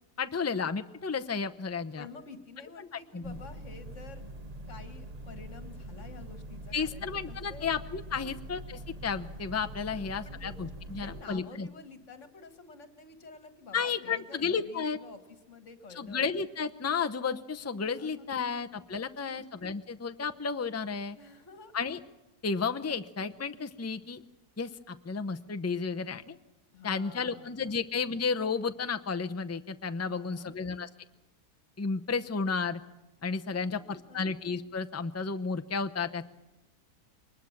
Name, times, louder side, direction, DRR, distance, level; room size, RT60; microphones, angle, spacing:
voice 1, 0.2-2.1 3.1-3.4 6.7-11.7 13.7-15.0 15.9-21.2 21.7-22.0 22.4-24.2 24.6-26.4 26.8-30.9 31.8-32.8 33.2-36.3, left 5 dB, 20° left, 8 dB, 0.4 m, -32 dB
voice 2, 2.0-4.2 4.7-7.7 8.1-8.4 9.9-10.5 10.9-16.3 18.0-18.3 18.6-18.7 19.2-19.5 21.1-21.7 22.8-23.0 26.7-27.8 30.0-30.6 33.5-34.3, left 4 dB, 50° left, 9 dB, 2.0 m, -50 dB
sound 1, 3.2-11.2, right 1 dB, 30° right, 0.9 m, -44 dB
23.0 x 20.5 x 7.3 m, 1.0 s
omnidirectional pair, 1.7 m